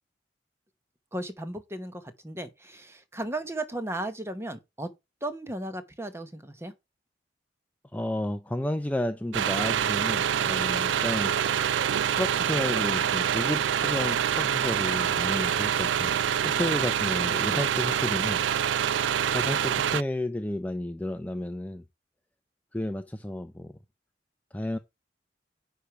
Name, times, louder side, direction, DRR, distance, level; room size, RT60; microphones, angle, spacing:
voice 1, 1.1-4.9 5.2-6.7, right 1 dB, 15° right, 1.0 m, -35 dB
voice 2, 7.9-11.7 12.0-18.4 19.3-21.9 22.7-23.7 24.5-24.8, left 1 dB, 10° left, 0.4 m, -32 dB
sound 1, 9.3-20.0, right 9 dB, 85° right, 0.4 m, -26 dB
9.8 x 3.3 x 5.8 m
head